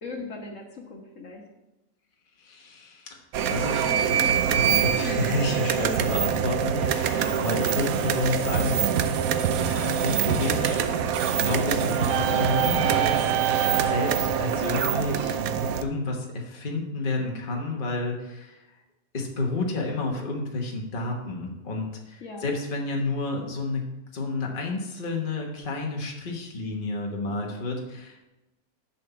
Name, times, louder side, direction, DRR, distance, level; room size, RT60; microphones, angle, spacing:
voice 1, 0.0-1.5 7.1-7.5 8.5-8.9 22.2-22.5, left 3 dB, 60° left, 1 dB, 1.8 m, -39 dB
voice 2, 2.4-3.2 3.5-8.8 9.6-15.4 15.8-18.6 19.1-28.2, left 2 dB, 40° left, 0 dB, 1.5 m, -31 dB
sound 1, 3.3-15.8, right 8 dB, 80° right, 1.1 m, -24 dB
11.0 x 4.4 x 6.8 m, 0.99 s
omnidirectional pair, 1.5 m